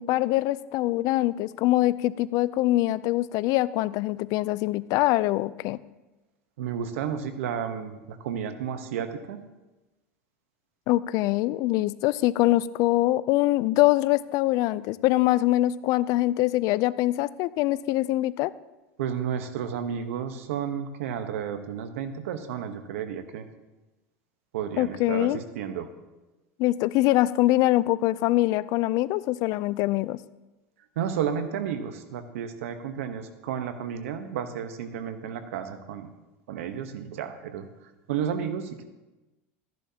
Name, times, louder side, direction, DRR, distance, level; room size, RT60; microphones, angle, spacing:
voice 1, 0.0-5.8 10.9-18.5 24.8-25.4 26.6-30.2, left 17 dB, 55° left, 18 dB, 0.4 m, -24 dB
voice 2, 6.6-9.4 19.0-23.5 24.5-25.9 31.0-36.1 36.5-37.7 38.1-38.8, right 8 dB, 80° right, 9 dB, 1.0 m, -32 dB
14.0 x 10.5 x 2.8 m, 1.1 s
supercardioid pair, 105°, 7 cm